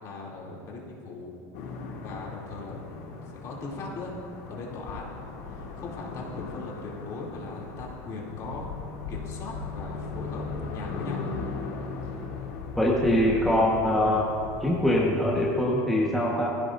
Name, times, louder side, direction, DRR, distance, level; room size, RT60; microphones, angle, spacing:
voice 1, 0.0-1.3 2.0-4.1 4.4-5.1 5.4-8.7 9.1-11.2, left 3 dB, 40° left, -3 dB, 3.0 m, -39 dB
sound 1, 1.5-15.6, left 4 dB, 75° left, 2.6 m, -38 dB
voice 2, 12.8-14.3 14.6-16.5, left 1 dB, ahead, -5 dB, 1.4 m, -23 dB
20.5 x 16.0 x 2.7 m, 2.6 s
supercardioid pair, 155°, 8 cm